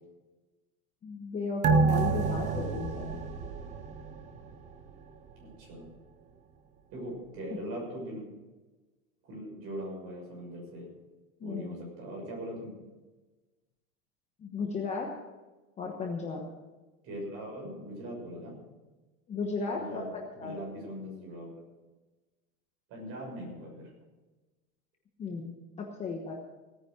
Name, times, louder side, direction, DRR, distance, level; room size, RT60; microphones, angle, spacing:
voice 1, 1.0-3.2 11.4-11.7 14.4-15.1 15.8-16.4 19.3-20.5 25.2-26.3, left 4 dB, 15° left, 1 dB, 1.1 m, -35 dB
sound 1, 1.6-4.5 4.9-5.0, right 4 dB, 20° right, 0.7 m, -28 dB
voice 2, 5.4-5.9 6.9-8.2 9.2-10.9 11.4-12.7 17.0-18.6 19.6-21.5 22.9-23.9, equal, 35° right, -1 dB, 6.6 m, -40 dB
17.5 x 9.5 x 6.4 m, 1.2 s
supercardioid pair, 170°, 41 cm